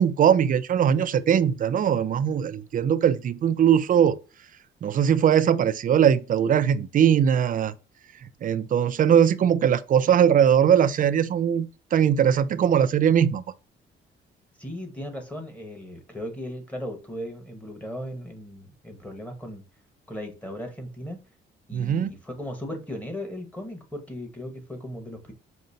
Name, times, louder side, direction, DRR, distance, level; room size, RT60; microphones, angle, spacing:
voice 1, 0.0-4.2 4.8-7.7 8.4-13.4 21.7-22.1, right 8 dB, 45° right, 0.4 m, -20 dB
voice 2, 14.6-19.6 20.1-21.2 21.7-25.3, equal, 5° left, 1.3 m, -37 dB
5.1 x 2.2 x 2.6 m
cardioid pair, 90°, 20 cm